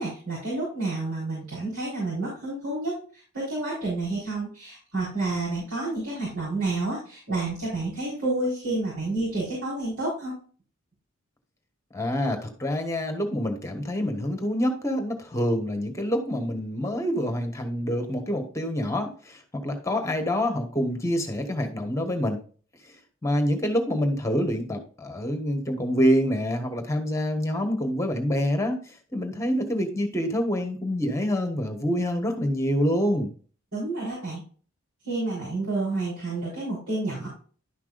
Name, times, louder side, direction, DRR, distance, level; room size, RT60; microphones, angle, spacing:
voice 1, 0.0-10.3 33.7-34.4 35.0-37.3, right 2 dB, 80° right, -7 dB, 4.3 m, -29 dB
voice 2, 11.9-22.4 23.2-28.8 29.1-33.3, equal, 15° left, 5 dB, 1.4 m, -26 dB
11.5 x 5.9 x 2.5 m, 0.41 s
head